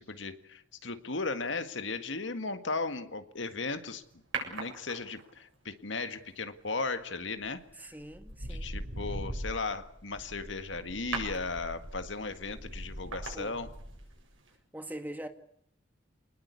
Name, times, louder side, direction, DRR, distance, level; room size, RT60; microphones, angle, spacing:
voice 1, 0.0-4.0 4.4-7.6 8.4-13.7, left 3 dB, 70° left, 1.9 m, -36 dB
sound 1, 4.3-5.4 7.2-7.5 8.0-14.2 14.5-14.6, right 2 dB, 85° right, 7.7 m, -39 dB
voice 2, 7.8-8.7 13.3-13.6 14.7-15.3, right 1 dB, 10° right, 1.8 m, -42 dB
26.5 x 20.0 x 8.4 m
head